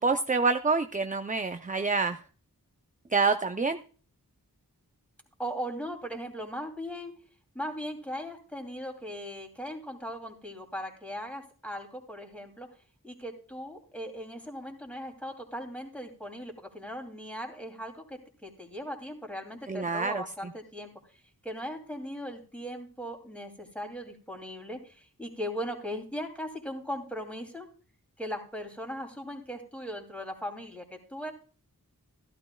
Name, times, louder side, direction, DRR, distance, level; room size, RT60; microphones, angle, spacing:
voice 1, 0.0-2.2 3.1-3.8 19.7-20.2, right 4 dB, 20° right, 8 dB, 0.5 m, -27 dB
voice 2, 5.4-7.1 7.5-12.7 13.0-27.7 28.2-31.3, equal, 5° left, 2 dB, 2.8 m, -38 dB
15.0 x 12.0 x 2.3 m, 0.39 s
wide cardioid pair, 40°, 36 cm